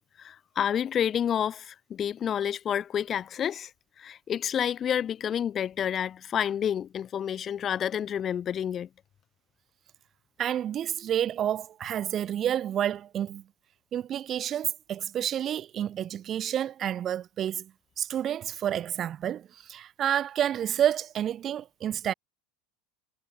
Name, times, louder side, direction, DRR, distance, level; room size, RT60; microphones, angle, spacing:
voice 1, 0.0-3.7 4.0-8.9, left 9 dB, 35° left, 1.5 m, -29 dB
voice 2, 10.4-13.4 13.9-17.7 18.0-22.1, right 10 dB, 40° right, 1.0 m, -29 dB
hypercardioid pair, 90°, 0 cm